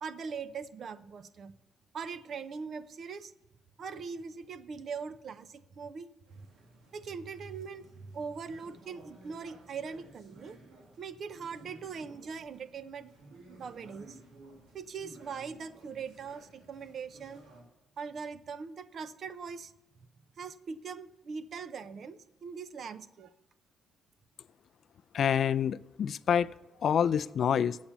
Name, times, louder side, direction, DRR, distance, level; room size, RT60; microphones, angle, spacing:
voice 1, 0.0-1.6 1.9-3.3 3.8-6.5 6.9-10.6 11.0-13.1 13.5-14.2 14.7-17.5 18.0-19.7 20.4-23.3, right 5 dB, 55° right, 14 dB, 0.6 m, -41 dB
sound 1, 6.3-17.6, right 2 dB, 85° right, 2.1 m, -55 dB
voice 2, 25.1-26.5 26.8-27.8, left 8 dB, 60° left, 17 dB, 0.3 m, -27 dB
8.5 x 7.3 x 6.8 m, 0.94 s
cardioid pair, 90°, 0 cm